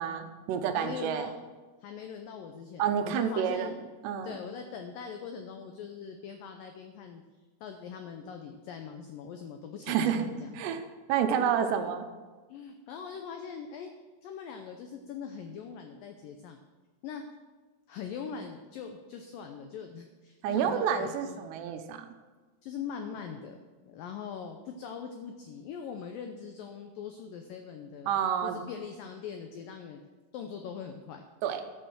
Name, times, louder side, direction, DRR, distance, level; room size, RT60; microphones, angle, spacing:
voice 1, 0.0-1.3 2.8-3.7 4.0-4.4 9.9-10.3 10.5-10.8 11.1-12.1 20.4-22.1 28.1-28.6 31.4-31.6, right 8 dB, 80° right, 7 dB, 3.0 m, -29 dB
voice 2, 0.8-1.3 1.8-3.7 4.2-7.2 7.6-10.8 11.4-11.9 12.5-13.9 14.2-16.6 17.0-17.2 17.9-21.4 22.6-30.0 30.3-31.2, left 6 dB, 85° left, 5 dB, 2.0 m, -42 dB
12.5 x 6.7 x 6.2 m, 1.3 s
omnidirectional pair, 4.9 m